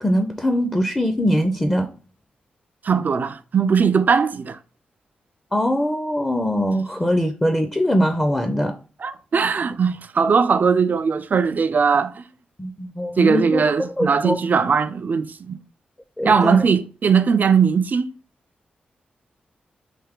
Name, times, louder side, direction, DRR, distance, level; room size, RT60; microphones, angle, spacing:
voice 1, 0.0-1.9 5.5-8.7 12.6-14.4 16.2-16.6, equal, 15° left, 0.5 m, -22 dB
voice 2, 2.8-4.6 9.0-12.2 13.2-15.6 16.2-18.1, right 6 dB, 55° right, 0.4 m, -19 dB
3.4 x 2.6 x 3.6 m
cardioid pair, 60°, 4 cm